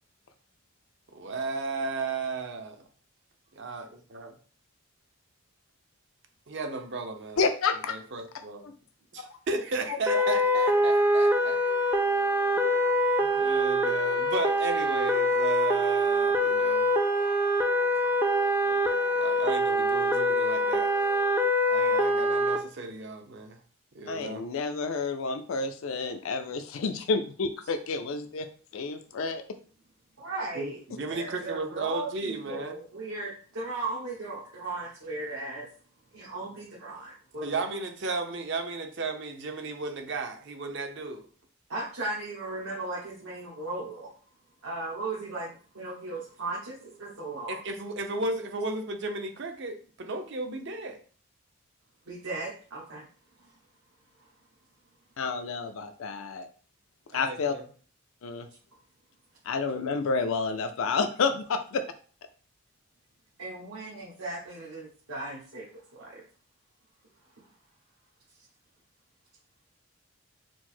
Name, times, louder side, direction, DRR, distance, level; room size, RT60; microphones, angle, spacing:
voice 1, 1.1-2.8 3.5-4.3 6.5-7.4 7.9-8.6 9.1-11.6 13.2-16.9 18.6-21.2 21.7-23.6 23.9-24.5 30.5-32.8 37.4-41.3 47.5-51.0 57.1-57.6, right 3 dB, 55° right, 5 dB, 0.6 m, -35 dB
voice 2, 7.4-8.0 8.6-8.7 9.9-10.2 24.1-28.5 28.7-29.4 55.2-56.5 57.1-57.6 58.2-58.5 59.5-61.8, left 4 dB, 70° left, 8 dB, 0.4 m, -29 dB
sound 1, 10.1-22.6, equal, 10° right, 0.3 m, -24 dB
voice 3, 30.2-30.8 31.1-35.7 36.1-37.6 41.7-44.1 44.6-47.6 52.1-53.0 53.4-53.5 63.4-66.2 67.4-67.5, right 2 dB, 75° right, -5 dB, 1.1 m, -37 dB
4.5 x 2.0 x 4.3 m, 0.41 s
head